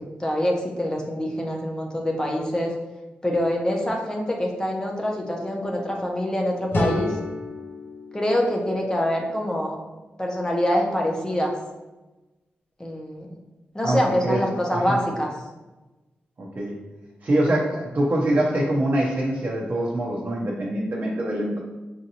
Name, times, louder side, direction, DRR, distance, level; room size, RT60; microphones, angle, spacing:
voice 1, 0.2-2.7 3.2-7.2 8.1-9.7 10.2-11.5 12.8-13.4 13.7-15.3, equal, 20° left, 0 dB, 0.8 m, -25 dB
D Bar thin strs, 6.7-9.6, left 2 dB, 65° left, 0.7 m, -30 dB
voice 2, 13.8-14.4 14.7-15.0 16.4-16.7 17.2-21.6, right 1 dB, 50° right, -4 dB, 0.8 m, -24 dB
5.1 x 2.6 x 2.9 m, 1.1 s
cardioid pair, 60°, 4 cm